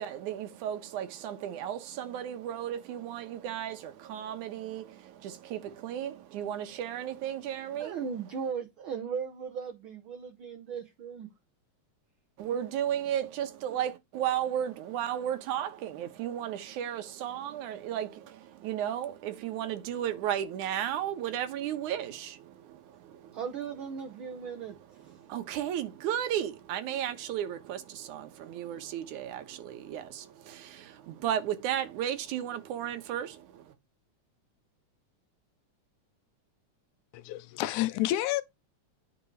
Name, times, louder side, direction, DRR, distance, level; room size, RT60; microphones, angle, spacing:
voice 1, 0.0-8.0 12.4-23.4 24.4-24.5 25.0-33.7, right 10 dB, 90° right, 2.6 m, -34 dB
voice 2, 7.8-11.3 23.3-24.8 25.0-25.2, right 6 dB, 65° right, 1.3 m, -37 dB
voice 3, 37.1-38.4, left 15 dB, 85° left, 2.2 m, -29 dB
9.6 x 5.3 x 4.6 m
omnidirectional pair, 3.4 m